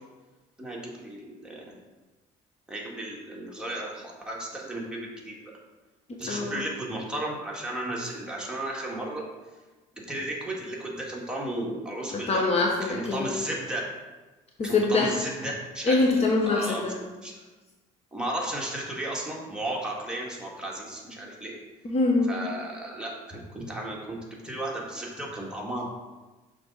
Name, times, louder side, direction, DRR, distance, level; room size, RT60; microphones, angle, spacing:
voice 1, 0.6-1.6 2.7-5.3 6.2-9.2 10.1-12.4 12.8-13.9 14.6-16.0 16.5-16.9 17.2-17.3 18.1-21.5 22.3-25.8, right 1 dB, 5° right, -3 dB, 1.8 m, -34 dB
voice 2, 12.1-13.3 14.6-15.1 15.8-16.9 21.8-22.3, left 3 dB, 40° left, -1 dB, 1.0 m, -24 dB
6.3 x 3.8 x 5.4 m, 1.2 s
supercardioid pair, 85°, 16 cm